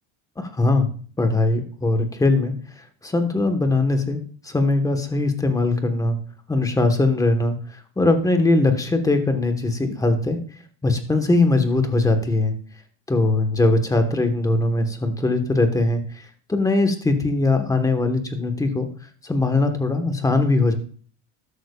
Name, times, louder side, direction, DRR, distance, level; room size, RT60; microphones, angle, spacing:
voice 1, 0.4-0.9 1.2-6.2 6.5-10.4 10.8-12.5 13.1-18.9 19.2-20.8, left 2 dB, 10° left, 6 dB, 1.2 m, -21 dB
13.5 x 11.5 x 2.4 m, 0.43 s
cardioid pair, 155°, 38 cm